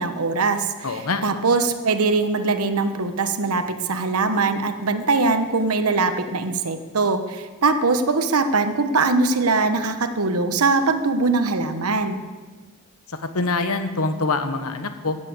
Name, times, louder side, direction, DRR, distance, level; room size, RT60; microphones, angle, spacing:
voice 1, 0.0-12.2, right 3 dB, 90° right, 9 dB, 1.1 m, -22 dB
voice 2, 0.8-1.2 13.3-15.2, left 3 dB, 80° left, 8 dB, 1.2 m, -24 dB
15.5 x 7.5 x 8.0 m, 1.4 s
head